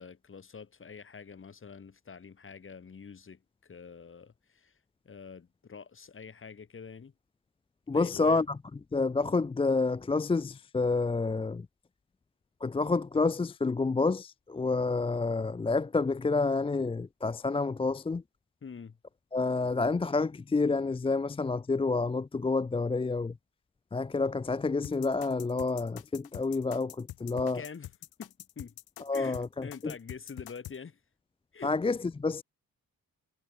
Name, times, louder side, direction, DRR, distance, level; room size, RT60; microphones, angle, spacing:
voice 1, 0.0-4.7 5.0-7.1 7.9-8.4 18.6-19.0 27.5-27.9 28.2-31.0 31.5-31.7, left 5 dB, 35° left, 1.0 m, -46 dB
voice 2, 7.9-8.6 8.9-11.7 12.6-18.2 19.3-23.4 23.9-27.6 29.0-29.9 31.6-32.4, left 3 dB, 15° left, 0.4 m, -29 dB
sound 1, 24.8-30.8, left 14 dB, 80° left, 0.7 m, -45 dB
cardioid pair, 60°, 36 cm